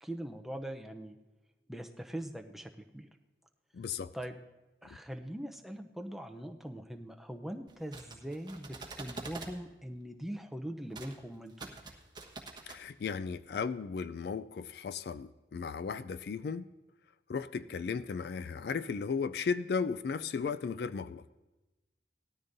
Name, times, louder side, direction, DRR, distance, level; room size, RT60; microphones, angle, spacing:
voice 1, 0.0-1.2 1.7-3.1 4.1-4.4 4.8-11.8, right 1 dB, ahead, 4 dB, 0.6 m, -42 dB
voice 2, 3.7-4.1 4.9-5.0 12.7-16.7 17.3-21.2, left 5 dB, 60° left, 14 dB, 0.3 m, -35 dB
sound 1, 7.7-9.6 10.9-11.2 11.5-12.8, right 3 dB, 25° right, 1.2 m, -46 dB
19.0 x 13.0 x 2.6 m, 1.1 s
head